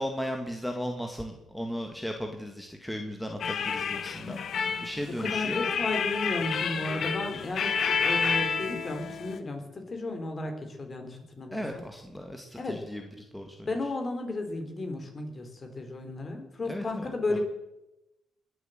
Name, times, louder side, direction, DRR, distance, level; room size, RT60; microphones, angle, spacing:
voice 1, 0.0-4.4 4.8-5.6 11.5-13.7 16.7-17.4, equal, 5° left, 3 dB, 1.8 m, -36 dB
sound 1, 3.4-9.4, left 6 dB, 60° left, 1.2 m, -29 dB
voice 2, 5.2-11.8 12.5-12.8 13.7-17.4, left 2 dB, 35° left, 5 dB, 3.5 m, -34 dB
20.5 x 7.9 x 7.8 m, 0.96 s
cardioid pair, 90°, 0 cm